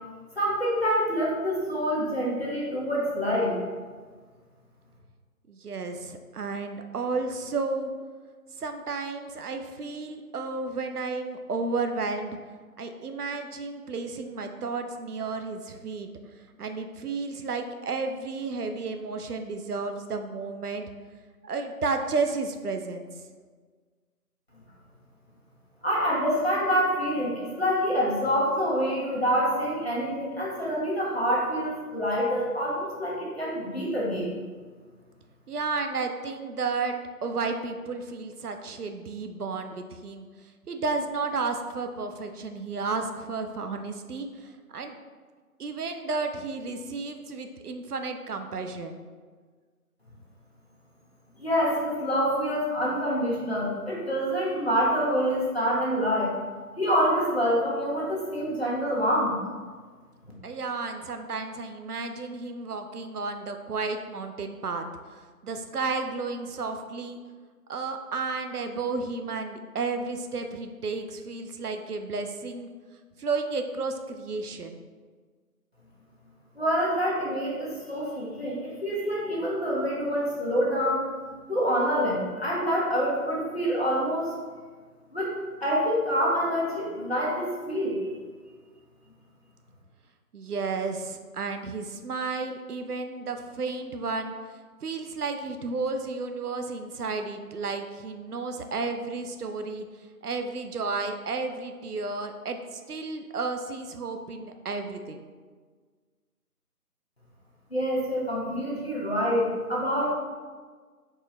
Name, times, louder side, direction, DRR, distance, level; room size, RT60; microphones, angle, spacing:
voice 1, 0.3-3.5 25.8-34.3 51.4-56.3 56.8-59.3 76.5-81.1 81.5-84.3 85.1-88.2 107.7-110.1, equal, 40° left, -5 dB, 0.9 m, -26 dB
voice 2, 5.5-7.9 8.6-12.4 12.8-16.1 16.6-20.9 21.4-23.1 35.5-40.2 40.7-45.0 45.6-49.0 60.4-67.2 67.7-72.7 73.2-74.8 90.3-94.3 94.8-99.8 100.2-105.2, right 4 dB, 75° right, 6 dB, 0.5 m, -32 dB
4.4 x 3.0 x 3.2 m, 1.5 s
figure-of-eight pair, 170°, 47 cm